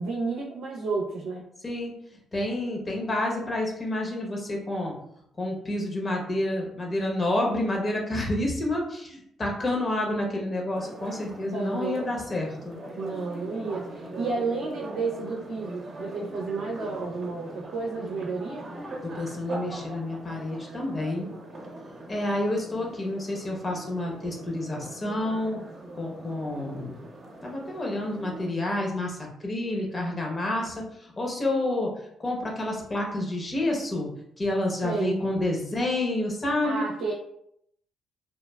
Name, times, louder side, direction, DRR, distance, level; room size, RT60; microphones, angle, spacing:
voice 1, 0.0-1.5 11.5-12.1 12.9-18.7 34.8-35.2 36.6-37.1, right 4 dB, 85° right, -3 dB, 0.6 m, -31 dB
voice 2, 2.3-4.9 5.4-12.8 19.0-21.3 22.1-25.6 26.0-27.0 27.4-30.7 31.0-31.9 32.2-34.1 34.4-36.8, left 1 dB, 30° left, -1 dB, 0.8 m, -29 dB
sound 1, 10.7-28.5, right 1 dB, 50° right, 0.7 m, -42 dB
3.0 x 2.1 x 2.2 m, 0.73 s
cardioid pair, 90°, 0 cm